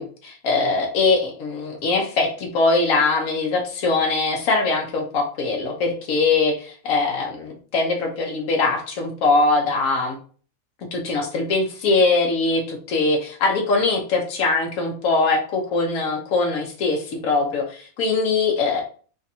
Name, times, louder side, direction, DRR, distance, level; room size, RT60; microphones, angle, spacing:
voice 1, 0.0-10.2 10.9-18.8, left 3 dB, 80° left, 1 dB, 1.3 m, -22 dB
5.0 x 2.4 x 2.7 m, 0.41 s
omnidirectional pair, 1.4 m